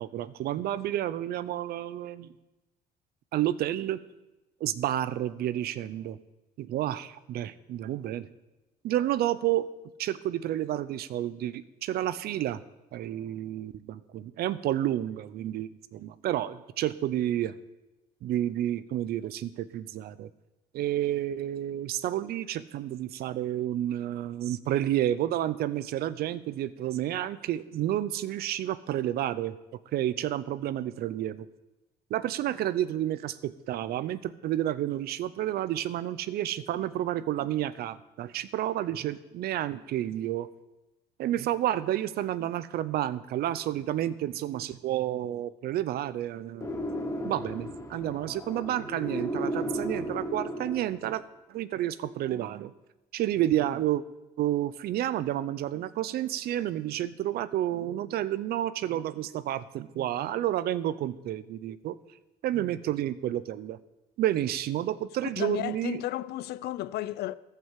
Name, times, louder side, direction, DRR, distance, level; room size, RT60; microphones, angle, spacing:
voice 1, 0.0-2.3 3.3-4.0 4.6-6.2 6.6-8.3 8.8-9.7 10.0-12.6 12.9-17.6 18.2-20.3 20.7-29.5 29.9-31.5 32.1-40.5 41.2-46.7 47.2-51.2 51.5-52.7 53.1-54.0 54.4-62.0 62.4-63.8 64.2-66.0, right 12 dB, 65° right, 0.6 m, -30 dB
sound 1, 46.6-51.2, equal, 15° left, 1.1 m, -34 dB
voice 2, 65.2-67.4, left 14 dB, 75° left, 0.5 m, -33 dB
14.0 x 5.7 x 7.5 m
cardioid pair, 110°, 17 cm